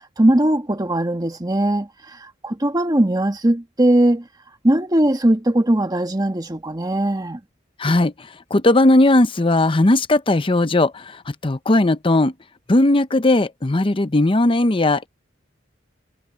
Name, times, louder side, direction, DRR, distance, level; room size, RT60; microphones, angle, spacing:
voice 1, 0.2-1.9 2.4-4.2 4.6-7.4, right 1 dB, 20° right, 1.4 m, -19 dB
voice 2, 7.8-8.1 8.5-12.3 12.7-15.1, left 2 dB, 25° left, 0.7 m, -17 dB
head